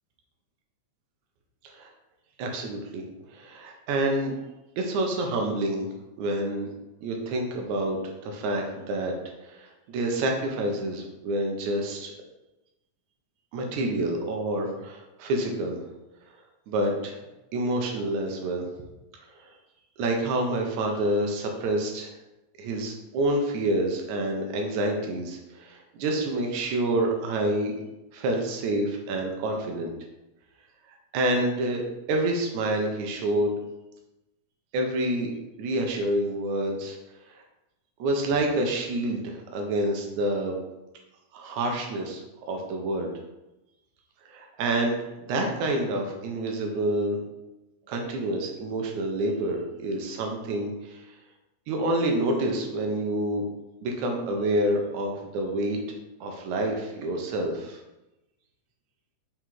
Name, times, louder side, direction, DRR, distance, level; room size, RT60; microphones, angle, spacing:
voice 1, 2.4-3.0 3.3-4.3 4.8-5.9 6.2-6.7 7.0-9.1 9.4-12.1 13.5-15.8 16.7-17.3 17.5-18.7 19.4-19.5 20.0-22.1 22.6-27.7 28.1-29.9 31.1-33.5 34.7-35.3 35.6-37.0 37.3-37.4 38.0-40.6 41.3-43.1 44.3-47.2 47.9-51.0 51.7-53.4 53.8-55.8 56.2-57.8, right 1 dB, 80° right, 2 dB, 2.2 m, -28 dB
5.5 x 3.8 x 4.6 m, 0.98 s
omnidirectional pair, 3.4 m